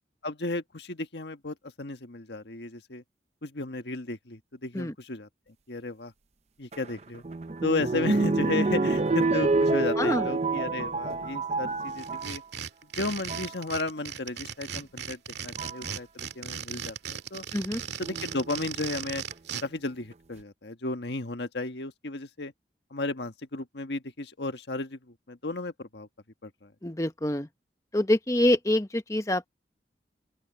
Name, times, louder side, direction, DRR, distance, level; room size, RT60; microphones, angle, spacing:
voice 1, 0.2-3.0 3.4-5.3 5.7-6.1 6.6-7.2 7.6-12.4 12.9-17.4 18.0-19.2 19.6-22.5 22.9-26.1 26.4-26.7, left 2 dB, 70° left, 1.5 m, -34 dB
sound 1, 6.7-12.4 13.1-13.5 14.8-14.9 15.6-15.9 18.0-18.6 19.3-19.4 19.6-19.7, right 3 dB, 35° right, 0.6 m, -27 dB
voice 2, 10.0-10.3 17.5-17.8 26.8-27.5 27.9-29.5, left 1 dB, 15° left, 1.0 m, -26 dB
sound 2, 12.0-19.6, right 7 dB, 70° right, 2.0 m, -37 dB
open air
head